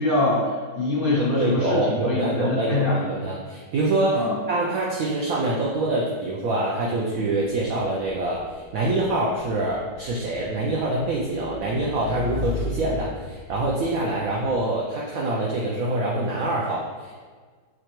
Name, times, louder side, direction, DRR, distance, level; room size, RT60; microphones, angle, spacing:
voice 1, 0.0-3.0 4.1-4.3, left 2 dB, 75° left, -6 dB, 0.5 m, -24 dB
voice 2, 1.2-17.1, right 2 dB, 75° right, -3 dB, 0.7 m, -25 dB
Motorcycle / Engine, 7.8-14.6, left 2 dB, 15° right, 0.7 m, -37 dB
3.7 x 3.2 x 3.0 m, 1.5 s
omnidirectional pair, 2.0 m